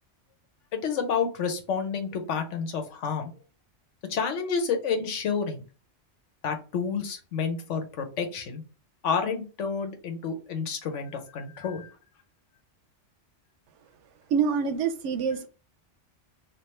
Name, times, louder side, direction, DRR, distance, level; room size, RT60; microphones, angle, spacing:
voice 1, 0.7-3.3 4.1-5.6 6.4-8.6 9.0-11.9, left 6 dB, 90° left, 6 dB, 1.1 m, -29 dB
voice 2, 14.3-15.5, right 6 dB, 80° right, 10 dB, 0.9 m, -26 dB
3.4 x 2.4 x 4.2 m, 0.35 s
omnidirectional pair, 1.2 m